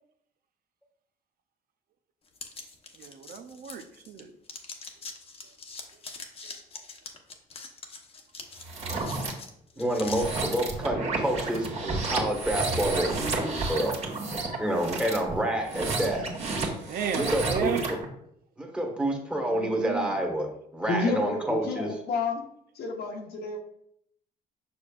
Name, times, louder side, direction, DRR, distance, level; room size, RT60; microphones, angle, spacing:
sound 1, 2.3-4.2 4.5-10.2, left 4 dB, 35° left, 1.0 m, -43 dB
voice 1, 3.0-4.3 16.9-17.8 19.4-20.2, right 7 dB, 60° right, 8 dB, 0.6 m, -33 dB
sound 2, 8.6-9.3 10.0-18.0, right 3 dB, 40° right, 1.7 m, -31 dB
voice 2, 9.8-14.0 14.6-16.3 17.1-17.8 18.6-21.9, right 1 dB, 5° right, 1 dB, 1.5 m, -28 dB
voice 3, 20.9-22.4 22.7-23.6, left 3 dB, 70° left, 2 dB, 1.1 m, -30 dB
6.8 x 6.1 x 2.4 m, 0.72 s
cardioid pair, 110°, 17 cm